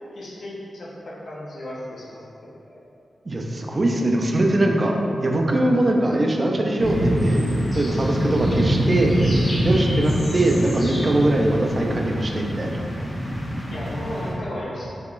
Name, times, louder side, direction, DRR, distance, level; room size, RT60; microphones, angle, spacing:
voice 1, 0.1-2.2 2.7-2.8 9.9-10.1 13.7-14.9, left 1 dB, 65° left, -6 dB, 0.7 m, -35 dB
voice 2, 3.3-7.5 7.7-9.1 9.6-12.8, right 1 dB, 30° right, 0 dB, 0.3 m, -21 dB
sound 1, 6.8-14.3, equal, 25° left, 0.8 m, -24 dB
3.6 x 2.9 x 2.4 m, 2.6 s
wide cardioid pair, 140°, 0 cm